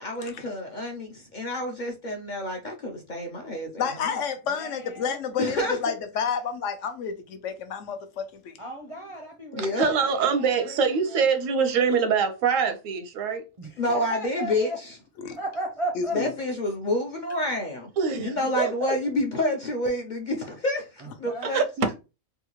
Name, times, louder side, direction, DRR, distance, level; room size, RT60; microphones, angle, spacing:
voice 1, 0.0-4.1 5.4-5.8 9.5-9.9 13.8-14.9 16.1-17.9 18.2-21.6, left 1 dB, 55° left, 0.5 m, -28 dB
voice 2, 3.8-8.6 15.2-15.4 16.0-16.3, left 6 dB, 75° left, 1.0 m, -30 dB
voice 3, 4.5-5.2 8.6-11.3 13.6-14.8 15.4-16.2 21.0-21.5, right 1 dB, 45° right, 0.4 m, -36 dB
voice 4, 9.8-13.5 18.0-18.7 21.4-21.9, right 6 dB, 85° right, 1.0 m, -24 dB
3.6 x 2.3 x 2.9 m
omnidirectional pair, 1.3 m